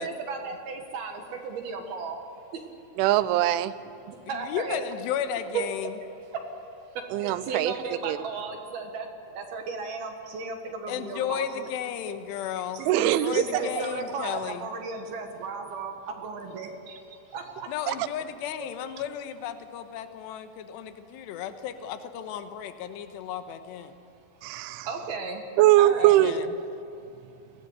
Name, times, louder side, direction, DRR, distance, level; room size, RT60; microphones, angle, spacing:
voice 1, 0.0-2.2 2.5-2.6 4.0-4.8 5.5-5.6 6.3-6.5 6.8-11.7 12.7-17.7 18.6-18.7 24.8-25.5 25.8-26.5, right 4 dB, 60° right, 4 dB, 3.0 m, -35 dB
voice 2, 3.0-3.7 7.1-7.7 8.0-8.2 12.9-13.4 17.9-18.0 24.4-24.9 25.6-26.4, right 14 dB, 85° right, 14 dB, 3.1 m, -21 dB
voice 3, 4.3-5.9 10.9-14.7 17.7-24.0 26.0-26.5, left 9 dB, 75° left, 9 dB, 3.0 m, -34 dB
24.0 x 18.5 x 8.1 m, 2.9 s
omnidirectional pair, 5.5 m